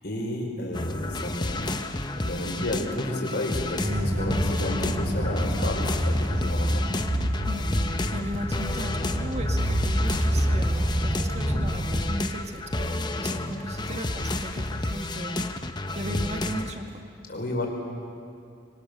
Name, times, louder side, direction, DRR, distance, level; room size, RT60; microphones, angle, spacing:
voice 1, 0.0-1.8 2.1-6.8 17.3-17.7, left 1 dB, 55° left, 0 dB, 4.8 m, -32 dB
sound 1, 0.7-16.7, left 2 dB, 25° left, 0.9 m, -31 dB
sound 2, 1.6-14.8, right 1 dB, 65° right, 4.4 m, -49 dB
sound 3, 3.8-12.0, equal, 15° right, 5.3 m, -27 dB
voice 2, 7.4-15.5 15.9-17.0, right 1 dB, 35° right, 4 dB, 1.8 m, -37 dB
25.0 x 24.0 x 6.7 m, 2.5 s
head